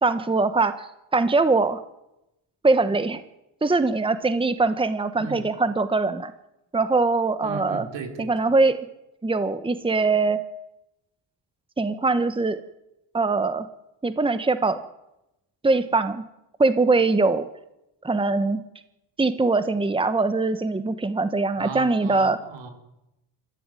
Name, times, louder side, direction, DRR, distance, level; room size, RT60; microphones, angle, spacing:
voice 1, 0.0-1.8 2.6-3.2 3.6-6.3 6.7-7.9 8.2-8.8 9.2-10.4 11.8-12.6 13.1-13.7 14.0-14.8 15.6-16.2 16.6-17.5 18.0-18.6 19.2-22.4, right 3 dB, 10° right, 11 dB, 1.3 m, -22 dB
voice 2, 7.4-8.3 21.6-22.7, right 5 dB, 80° right, 4 dB, 4.7 m, -36 dB
25.0 x 14.5 x 9.2 m, 0.92 s
cardioid pair, 100°, 44 cm